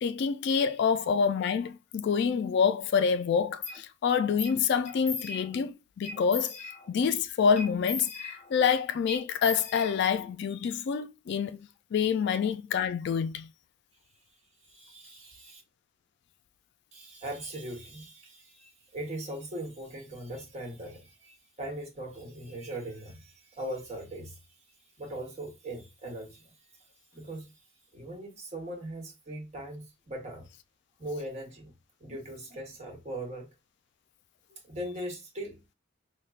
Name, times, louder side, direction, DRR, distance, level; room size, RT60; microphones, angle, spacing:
voice 1, 0.0-6.5 6.9-13.5, left 6 dB, 60° left, 0.3 m, -27 dB
sound 1, 3.6-3.8 4.4-4.6 4.9-5.7 6.0-7.1 7.6-8.7 9.1-10.3, left 5 dB, 35° left, 1.1 m, -38 dB
voice 2, 14.7-15.6 16.9-24.4 25.0-26.5 27.1-27.5 27.9-30.5 31.0-31.7 32.0-33.5 34.5-35.7, right 1 dB, 35° right, 1.1 m, -40 dB
5.2 x 2.1 x 2.4 m
head